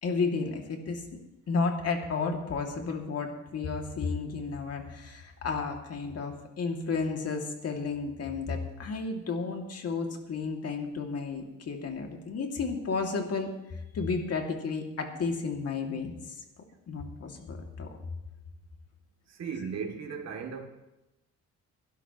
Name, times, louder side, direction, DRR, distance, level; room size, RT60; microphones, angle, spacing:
voice 1, 0.0-1.1 1.5-16.4 16.9-18.0, left 4 dB, 55° left, 2.5 m, -32 dB
voice 2, 19.3-20.6, right 6 dB, 60° right, 2.7 m, -36 dB
22.5 x 12.0 x 3.1 m
cardioid pair, 90°, 30 cm